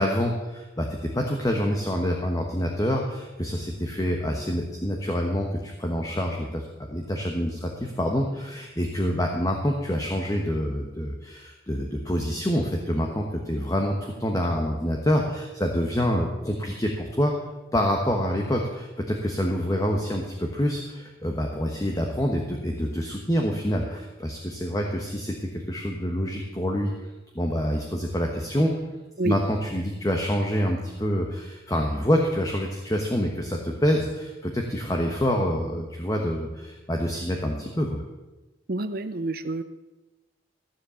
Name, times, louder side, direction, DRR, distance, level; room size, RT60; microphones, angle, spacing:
voice 1, 0.0-17.3 17.7-27.1 27.3-28.7 29.2-38.0, equal, 20° left, 1 dB, 1.2 m, -26 dB
voice 2, 38.7-39.6, right 2 dB, 55° right, 12 dB, 0.7 m, -28 dB
14.5 x 7.6 x 7.0 m, 1.1 s
head